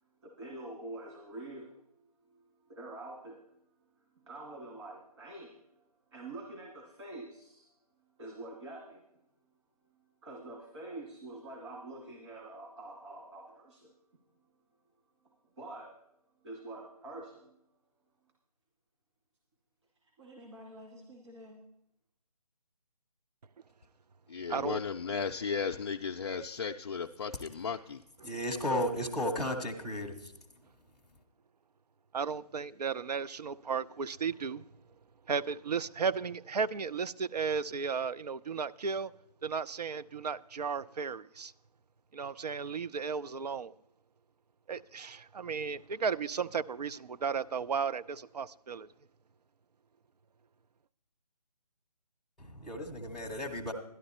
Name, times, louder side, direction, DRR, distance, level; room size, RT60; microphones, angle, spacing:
voice 1, 0.2-1.8 2.7-3.4 4.3-7.7 8.2-9.0 10.2-13.9 15.6-15.9 16.4-17.5 20.2-21.7, right 2 dB, 45° right, 2.2 m, -46 dB
voice 2, 24.3-28.0, left 6 dB, 45° left, 0.4 m, -35 dB
voice 3, 28.3-30.2 52.4-53.7, left 1 dB, ahead, 0.6 m, -34 dB
voice 4, 32.1-34.7 35.3-39.1 39.4-41.5 42.1-43.7 44.7-48.9, right 5 dB, 80° right, 0.5 m, -34 dB
12.0 x 11.0 x 4.2 m
figure-of-eight pair, 160°, 20 cm